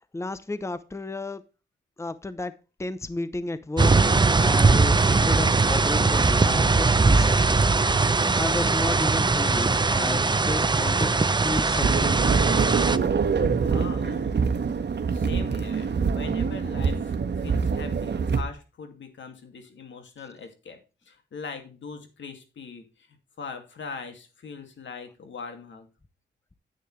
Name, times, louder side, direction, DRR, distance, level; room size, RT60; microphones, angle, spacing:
voice 1, 0.1-1.4 2.0-2.5 2.8-7.4 7.9-12.7, left 2 dB, 15° left, 0.8 m, -33 dB
sound 1, 3.8-13.0, right 3 dB, 25° right, 0.6 m, -21 dB
sound 2, 11.8-18.4, right 5 dB, 70° right, 1.4 m, -25 dB
voice 2, 13.5-14.4 15.1-20.8 21.1-25.9, left 5 dB, 85° left, 2.4 m, -41 dB
10.0 x 8.9 x 3.3 m
cardioid pair, 85°, 19 cm